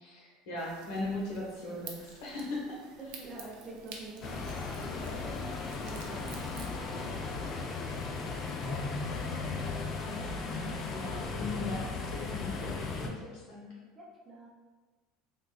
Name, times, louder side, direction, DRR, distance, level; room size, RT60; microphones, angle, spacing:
voice 1, 0.0-2.8 10.9-13.8, left 2 dB, 75° left, -3 dB, 0.9 m, -38 dB
sound 1, 0.6-6.7, right 5 dB, 80° right, 0.4 m, -50 dB
voice 2, 3.0-10.3 13.9-14.5, right 2 dB, 25° right, -4 dB, 0.7 m, -48 dB
sound 2, 4.2-13.1, left 4 dB, 40° left, 0.4 m, -36 dB
3.4 x 2.3 x 2.3 m, 1.3 s
supercardioid pair, 130°, 0 cm